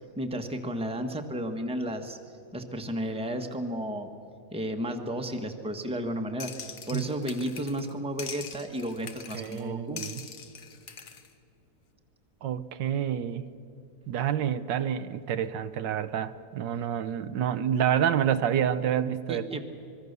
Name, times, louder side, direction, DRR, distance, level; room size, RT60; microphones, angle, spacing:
voice 1, 0.2-2.2 2.5-4.1 4.5-6.5 6.9-10.0 19.3-19.6, equal, 5° right, 4 dB, 1.2 m, -33 dB
sound 1, 6.4-7.9 8.2-9.6 10.0-11.3, left 6 dB, 50° left, 1.5 m, -42 dB
voice 2, 9.3-10.2 12.4-13.4 14.1-19.5, right 9 dB, 85° right, 12 dB, 1.5 m, -28 dB
25.0 x 22.0 x 6.8 m, 2.6 s
omnidirectional pair, 1.9 m